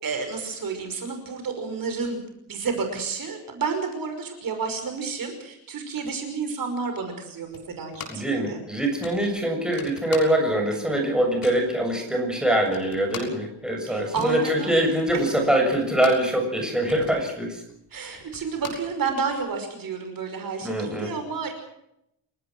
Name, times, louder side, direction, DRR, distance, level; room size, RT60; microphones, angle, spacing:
voice 1, 0.0-2.2 2.5-8.6 13.9-14.8 15.1-15.2 17.9-21.5, right 5 dB, 50° right, 6 dB, 5.7 m, -30 dB
sound 1, 7.5-8.4 8.6-8.7 9.0-10.7 11.0-11.7 12.2-12.3 12.5-16.4 16.7-19.4, left 5 dB, 50° left, 6.8 m, -42 dB
voice 2, 8.1-17.6 17.9-18.2 20.6-21.1, right 1 dB, ahead, 2 dB, 7.1 m, -24 dB
30.0 x 18.0 x 6.2 m, 0.79 s
wide cardioid pair, 165°, 44 cm